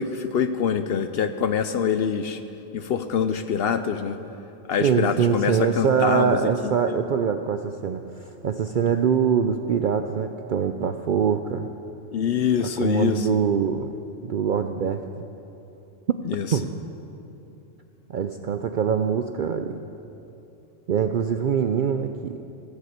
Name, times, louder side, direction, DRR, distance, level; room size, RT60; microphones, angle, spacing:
voice 1, 0.0-2.4 2.7-4.2 4.7-7.0 12.1-13.3 16.3-16.6, left 7 dB, 60° left, 10 dB, 0.7 m, -25 dB
voice 2, 4.8-11.7 12.8-13.9 14.2-15.3 16.1-16.2 16.5-16.7 18.1-19.8 20.9-22.4, right 7 dB, 65° right, 7 dB, 0.5 m, -24 dB
16.5 x 6.8 x 8.2 m, 2.9 s
omnidirectional pair, 1.3 m